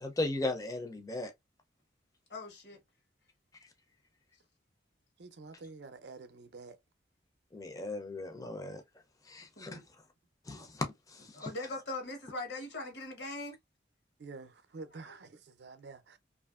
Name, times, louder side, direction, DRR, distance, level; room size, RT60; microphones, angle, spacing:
voice 1, 0.0-1.3 7.5-8.8 9.3-9.8 10.5-10.9 11.4-11.5, left 2 dB, 20° left, 0.4 m, -36 dB
voice 2, 2.3-2.8 9.6-9.8 11.3-13.6 15.0-15.1, left 2 dB, 70° left, 1.0 m, -41 dB
voice 3, 5.2-6.8 14.2-16.2, right 3 dB, 65° right, 0.5 m, -48 dB
2.7 x 2.5 x 2.3 m
head